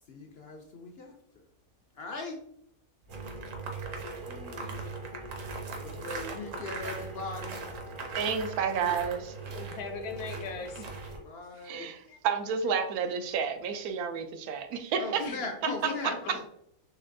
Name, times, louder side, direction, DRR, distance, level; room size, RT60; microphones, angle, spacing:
voice 1, 0.1-1.1 2.0-2.4 4.1-4.8 5.6-7.7 11.2-11.9 15.0-16.5, left 3 dB, 65° left, 2 dB, 0.6 m, -40 dB
sound 1, 3.1-11.2, right 4 dB, 30° right, 0.6 m, -42 dB
sound 2, 3.1-11.2, right 3 dB, 65° right, 1.1 m, -42 dB
voice 2, 8.1-9.3 11.6-15.3 15.6-16.5, right 6 dB, 85° right, 7 dB, 1.1 m, -31 dB
voice 3, 9.4-10.9 12.1-12.2 15.2-16.4, left 5 dB, 85° left, 6 dB, 1.1 m, -39 dB
4.3 x 3.1 x 2.5 m, 0.71 s
omnidirectional pair, 1.5 m